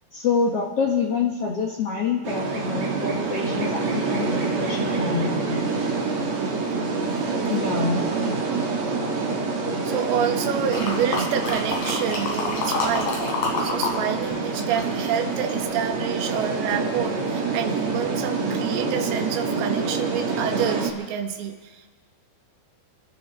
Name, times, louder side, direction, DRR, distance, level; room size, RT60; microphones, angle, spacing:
voice 1, 0.1-5.6 7.5-8.0, left 5 dB, 80° left, -2 dB, 1.3 m, -26 dB
sound 1, 2.2-20.9, right 4 dB, 50° right, 1.7 m, -26 dB
voice 2, 7.6-8.0 9.8-13.2 13.6-21.9, right 8 dB, 70° right, 4 dB, 2.8 m, -28 dB
sound 2, 10.7-14.0 14.2-15.7 16.2-16.3, left 3 dB, 40° left, 4.0 m, -27 dB
29.0 x 12.5 x 3.6 m, 1.4 s
omnidirectional pair, 5.0 m